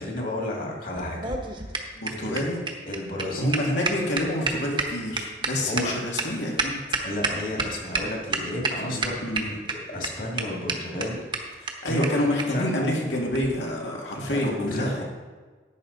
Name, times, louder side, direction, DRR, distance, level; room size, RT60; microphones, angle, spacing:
voice 1, 0.0-1.8 2.2-2.4 2.9-3.7 5.5-6.0 7.0-11.5 11.9-12.9 14.3-15.0, left 1 dB, 50° left, -1 dB, 2.2 m, -32 dB
sound 1, 1.0-7.7 7.9-8.0 8.3-8.7 9.0-9.7 10.0-10.1 10.4-10.5 10.7-10.8 11.0-11.1 11.3-11.4 11.7-11.8 12.0-12.1 12.4-12.5 13.3-13.5, right 4 dB, 25° right, 1.0 m, -28 dB
voice 2, 2.0-2.6 3.4-7.0 8.8-9.5 11.6-15.0, left 1 dB, 90° left, -1 dB, 2.2 m, -28 dB
11.0 x 8.9 x 4.0 m, 1.4 s
head